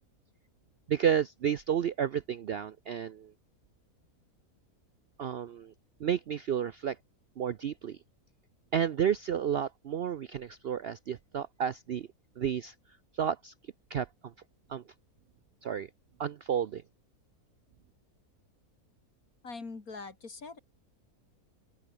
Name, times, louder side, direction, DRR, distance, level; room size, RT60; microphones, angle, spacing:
voice 1, 0.9-3.3 5.2-5.7 6.0-7.0 7.4-8.0 8.7-12.1 12.4-12.7 13.2-13.5 13.9-14.3 14.7-14.8 15.6-15.9 16.2-16.8, right 8 dB, 65° right, 0.6 m, -31 dB
voice 2, 19.4-20.6, left 4 dB, 70° left, 3.4 m, -42 dB
open air
omnidirectional pair, 1.6 m